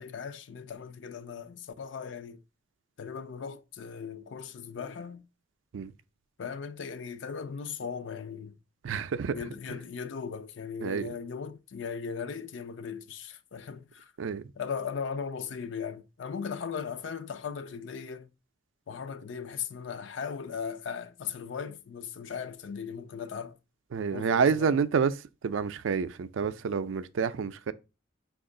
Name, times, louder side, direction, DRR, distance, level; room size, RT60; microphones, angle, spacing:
voice 1, 0.0-2.4 3.0-5.2 6.4-8.6 9.3-14.1 14.6-18.3 18.9-23.6 24.1-24.8, left 6 dB, 65° left, 0.4 m, -38 dB
voice 2, 8.8-9.4 10.8-11.1 14.2-14.4 23.9-25.1 25.4-27.7, right 6 dB, 75° right, 0.4 m, -28 dB
5.1 x 2.4 x 3.6 m
head